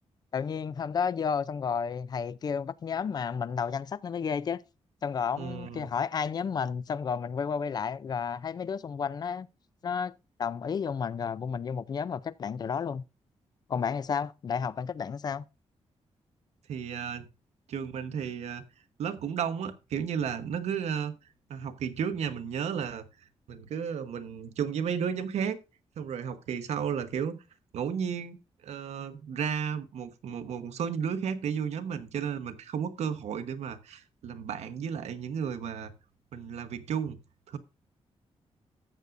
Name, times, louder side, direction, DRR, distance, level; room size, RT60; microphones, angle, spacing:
voice 1, 0.3-4.6 5.0-9.5 9.8-10.1 10.4-13.0 13.7-15.4, left 6 dB, 35° left, 0.4 m, -32 dB
voice 2, 5.4-5.9 16.7-17.3 17.7-18.6 19.0-21.2 21.5-23.1 23.5-25.6 26.0-27.4 27.7-28.4 28.6-35.9 36.3-37.2 37.5-37.6, right 7 dB, 80° right, 1.0 m, -33 dB
13.5 x 8.0 x 2.5 m
wide cardioid pair, 175°, 11 cm